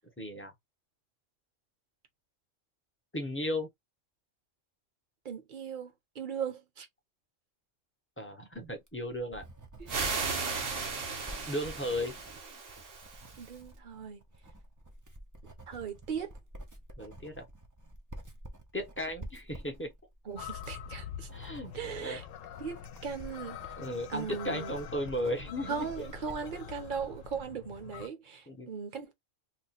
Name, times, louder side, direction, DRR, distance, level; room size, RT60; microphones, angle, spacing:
voice 1, 0.2-0.5 3.1-3.7 8.2-9.4 11.5-12.2 17.0-17.5 18.7-19.9 21.3-22.2 23.8-26.1 28.5-28.7, left 1 dB, 15° left, 0.6 m, -35 dB
voice 2, 5.2-6.9 10.2-10.6 13.4-14.2 15.7-16.3 20.3-21.3 21.7-22.2 22.6-23.6 24.1-24.8 25.7-29.1, right 6 dB, 45° right, 0.9 m, -38 dB
Writing, 8.7-27.5, right 1 dB, 25° right, 0.4 m, -50 dB
sound 1, 9.9-13.5, right 4 dB, 75° right, 1.4 m, -36 dB
sound 2, 20.4-28.1, left 10 dB, 85° left, 0.9 m, -45 dB
2.9 x 2.2 x 4.1 m
omnidirectional pair, 1.3 m